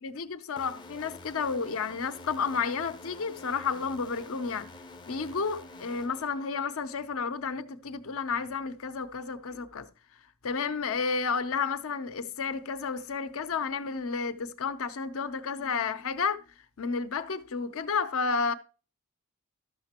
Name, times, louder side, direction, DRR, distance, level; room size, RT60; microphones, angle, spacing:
voice 1, 0.0-4.7 5.1-9.9 10.4-16.4 16.8-18.5, left 5 dB, 65° left, 0.6 m, -31 dB
sound 1, 0.6-7.0, left 2 dB, 20° left, 0.5 m, -48 dB
12.5 x 6.6 x 2.9 m
head